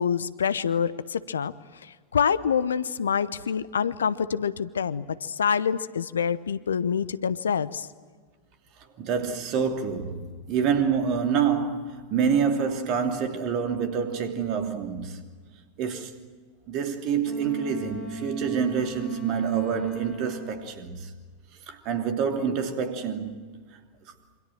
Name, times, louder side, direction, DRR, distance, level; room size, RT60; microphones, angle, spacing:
voice 1, 0.0-7.9, left 7 dB, 70° left, 0.9 m, -26 dB
voice 2, 9.0-15.4 15.8-16.2 16.7-21.1 21.7-23.6, right 7 dB, 40° right, 2.9 m, -27 dB
Wind instrument woodwind instrument, 17.2-20.7, equal, 20° left, 4.8 m, -39 dB
27.5 x 25.5 x 7.6 m
figure-of-eight pair, 90°, 0 cm